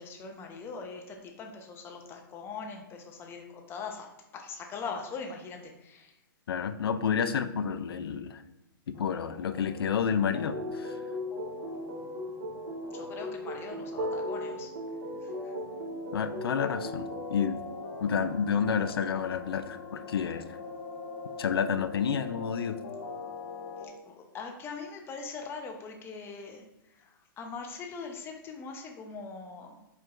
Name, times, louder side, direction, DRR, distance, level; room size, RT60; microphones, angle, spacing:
voice 1, 0.0-4.1 4.3-6.1 12.9-14.7 15.2-15.5 23.8-26.6 26.9-29.8, left 5 dB, 20° left, 3 dB, 0.7 m, -41 dB
voice 2, 6.5-8.4 8.9-11.0 16.1-17.6 18.0-20.5 21.4-22.7, left 7 dB, 90° left, 10 dB, 0.4 m, -30 dB
sound 1, 8.9-23.9, left 4 dB, 50° left, 1.1 m, -43 dB
sound 2, 10.5-17.5, equal, 70° right, 1.1 m, -37 dB
4.5 x 4.5 x 2.5 m, 0.94 s
hypercardioid pair, 140°, 12 cm